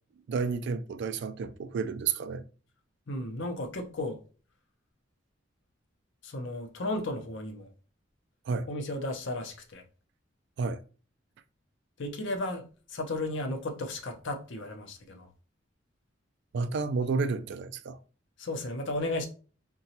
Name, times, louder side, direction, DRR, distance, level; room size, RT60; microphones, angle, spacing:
voice 1, 0.3-2.4 8.5-8.7 10.6-10.8 16.5-18.0, right 4 dB, 60° right, 0.3 m, -31 dB
voice 2, 3.1-4.2 6.2-7.7 8.7-9.8 12.0-12.6 12.9-15.3 18.4-19.3, left 2 dB, 65° left, 0.6 m, -34 dB
3.8 x 2.2 x 2.8 m
head